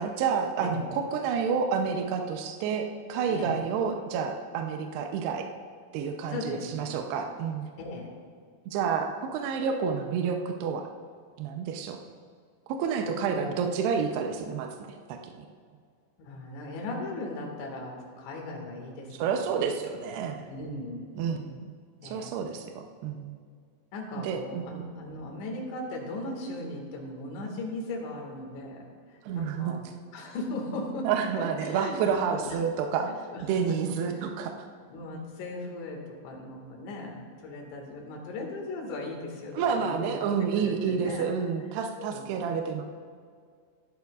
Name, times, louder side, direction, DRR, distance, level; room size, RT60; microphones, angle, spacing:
voice 1, 0.0-5.4 5.9-7.7 8.7-10.9 11.4-12.0 12.7-14.7 15.1-15.2 19.2-20.4 21.2-21.6 22.0-23.4 24.2-24.8 29.3-29.8 31.0-33.1 33.4-34.5 39.5-42.8, right 6 dB, 80° right, 4 dB, 2.5 m, -29 dB
voice 2, 3.3-3.6 6.3-6.9 7.8-8.1 13.0-13.4 16.2-19.2 20.5-21.0 22.0-22.3 23.9-28.8 29.1-29.8 30.1-31.1 31.4-32.6 33.3-33.4 33.9-34.3 34.9-41.3 42.0-42.3, left 2 dB, 75° left, -1 dB, 4.0 m, -38 dB
17.0 x 11.5 x 2.4 m, 2.1 s
omnidirectional pair, 5.4 m